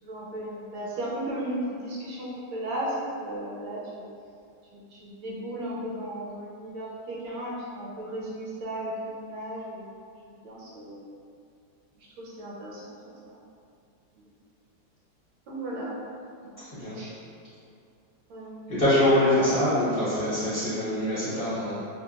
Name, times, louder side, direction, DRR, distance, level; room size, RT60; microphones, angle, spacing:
voice 1, 0.0-4.1 4.7-11.1 12.2-13.4 14.1-14.2 15.5-16.0 16.9-17.3 18.3-18.7, right 1 dB, 80° right, -6 dB, 1.4 m, -35 dB
voice 2, 18.7-21.8, left 1 dB, 35° left, -15 dB, 1.2 m, -24 dB
3.2 x 2.7 x 2.4 m, 2.4 s
omnidirectional pair, 2.1 m